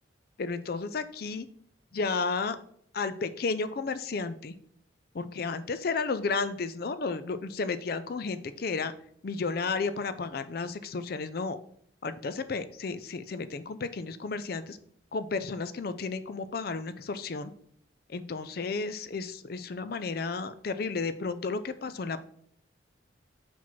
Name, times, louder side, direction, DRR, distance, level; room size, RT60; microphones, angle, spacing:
voice 1, 0.4-1.5 1.9-2.6 2.9-4.5 5.1-8.9 9.2-11.6 12.0-14.8 15.1-17.5 18.1-22.2, left 4 dB, 50° left, 12 dB, 0.4 m, -32 dB
6.0 x 4.6 x 4.1 m, 0.64 s
head